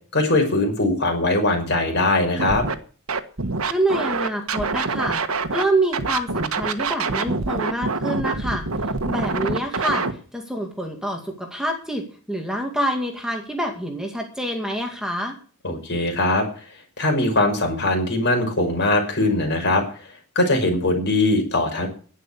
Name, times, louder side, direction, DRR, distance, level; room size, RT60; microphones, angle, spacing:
voice 1, 0.1-2.6 15.6-16.5 17.0-19.8 20.4-21.9, left 2 dB, 50° left, 3 dB, 5.9 m, -21 dB
Scratching (performance technique), 2.4-2.7 3.1-5.6 5.9-10.1, right 4 dB, 65° right, 1.4 m, -25 dB
voice 2, 3.6-5.2 5.5-8.6 9.1-10.1 10.3-15.4, right 1 dB, 5° right, 3 dB, 2.2 m, -26 dB
11.0 x 11.0 x 7.0 m, 0.40 s
head